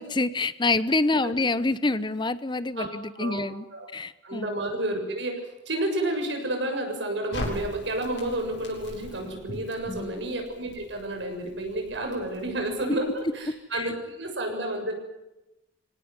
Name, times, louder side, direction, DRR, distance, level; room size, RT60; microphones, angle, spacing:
voice 1, 0.0-3.6 3.9-4.5 9.9-10.1 13.7-13.9, left 3 dB, 25° left, 15 dB, 0.8 m, -27 dB
voice 2, 4.2-14.9, right 1 dB, 70° right, 3 dB, 7.1 m, -30 dB
Crackle, 7.3-13.5, left 1 dB, 75° left, 7.8 m, -41 dB
25.5 x 18.0 x 9.6 m, 0.94 s
head